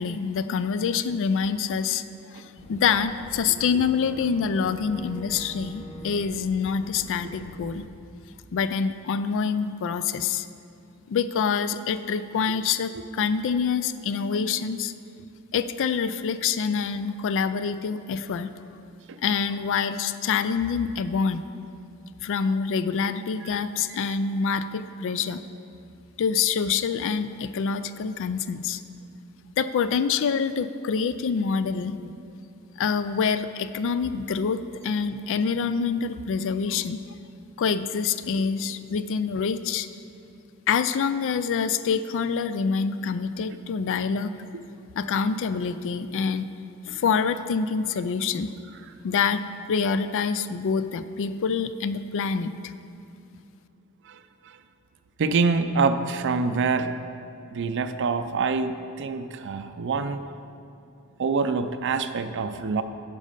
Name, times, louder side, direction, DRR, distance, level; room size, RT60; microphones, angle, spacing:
voice 1, 0.0-2.0 2.3-7.9 8.5-10.5 11.1-14.9 15.5-18.5 19.2-21.4 22.2-25.4 26.2-28.8 29.6-32.1 32.8-37.0 37.6-39.9 40.7-44.3 45.0-46.5 46.9-48.5 49.0-52.7, left 6 dB, 60° left, 13 dB, 0.4 m, -26 dB
Boat Water vehicle / Engine, 2.6-7.9, right 1 dB, 30° left, 0.8 m, -44 dB
voice 2, 54.0-54.6 55.2-56.9 57.5-60.2 61.2-62.8, right 4 dB, 55° right, 11 dB, 0.4 m, -26 dB
10.0 x 5.2 x 5.5 m, 2.6 s
head